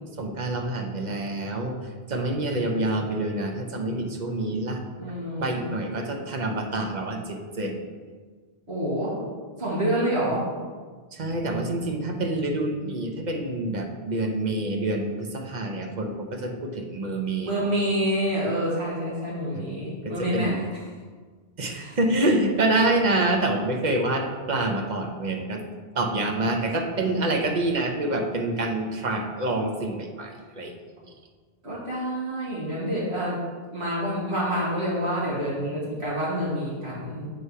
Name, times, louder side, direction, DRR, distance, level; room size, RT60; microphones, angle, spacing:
voice 1, 0.2-1.8 2.1-4.8 5.4-7.8 11.1-17.7 19.5-20.6 21.6-25.6 25.9-30.7, right 2 dB, 45° right, 3 dB, 0.9 m, -27 dB
voice 2, 5.0-5.7 8.7-9.2 9.6-10.5 17.4-20.5 21.7-22.0 31.6-33.4 33.7-37.3, equal, 85° right, -8 dB, 2.2 m, -27 dB
8.1 x 3.2 x 5.5 m, 1.5 s
omnidirectional pair, 1.1 m